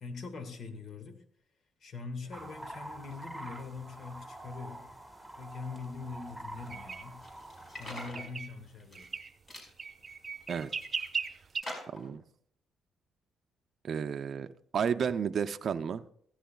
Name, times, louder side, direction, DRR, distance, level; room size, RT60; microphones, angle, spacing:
voice 1, 0.0-1.2 1.8-4.9 5.4-7.2 7.8-9.1, left 4 dB, 60° left, 1.9 m, -43 dB
sound 1, 2.3-8.1, right 1 dB, 5° left, 2.7 m, -46 dB
sound 2, 6.7-7.0 8.0-8.5 9.0-9.3 9.8-11.6, right 5 dB, 35° right, 1.0 m, -37 dB
sound 3, 7.2-8.3 8.8-9.2 9.5-9.7 10.3-11.1 11.6-12.1, left 1 dB, 35° left, 5.4 m, -44 dB
voice 2, 11.9-12.2 13.8-14.5 14.7-16.0, right 7 dB, 55° right, 0.6 m, -32 dB
16.0 x 14.0 x 2.4 m
cardioid pair, 90°, 0 cm